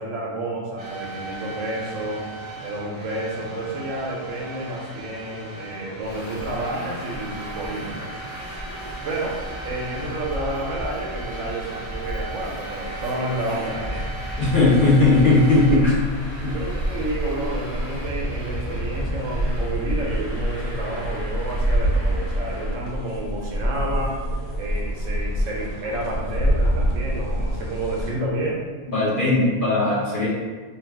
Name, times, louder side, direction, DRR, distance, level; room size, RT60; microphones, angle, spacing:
voice 1, 0.0-2.2 2.6-8.1 9.0-9.4 9.6-14.1 16.5-24.2 24.6-28.6, right 1 dB, 75° right, -2 dB, 1.0 m, -30 dB
sound 1, 0.8-15.8, right 3 dB, 55° right, 1.0 m, -37 dB
Traffic noise roadway noise, 6.0-22.7, equal, 25° left, 1.1 m, -34 dB
voice 2, 14.4-16.0 16.4-16.5 28.9-30.3, left 2 dB, 45° left, -8 dB, 0.8 m, -18 dB
sound 2, 15.4-28.1, equal, 75° left, 1.0 m, -26 dB
2.7 x 2.3 x 3.4 m, 1.4 s
omnidirectional pair, 1.4 m